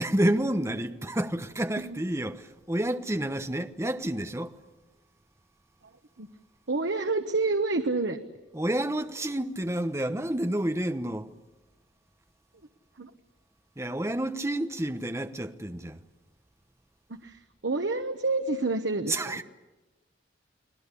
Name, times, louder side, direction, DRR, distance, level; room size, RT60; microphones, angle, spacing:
voice 1, 0.0-4.5 8.5-11.3 13.8-16.0 19.1-19.4, right 1 dB, 15° right, 1.0 m, -29 dB
voice 2, 6.7-8.2 13.0-13.1 17.2-19.4, right 3 dB, 85° right, 1.1 m, -28 dB
30.0 x 20.5 x 8.4 m
head